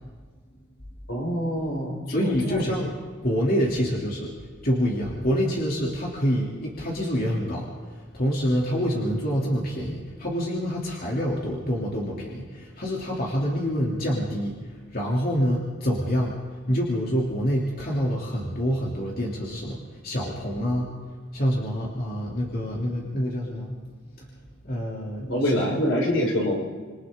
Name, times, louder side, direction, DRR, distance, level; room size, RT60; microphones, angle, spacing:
voice 1, 1.1-2.7 20.6-20.7 25.2-26.6, equal, 85° left, -2 dB, 6.4 m, -25 dB
voice 2, 2.1-2.9 3.2-16.4 16.7-20.9 21.3-23.8 24.2-24.4 24.6-25.6, equal, 50° left, -3 dB, 3.3 m, -27 dB
27.5 x 26.5 x 3.9 m, 1.5 s
head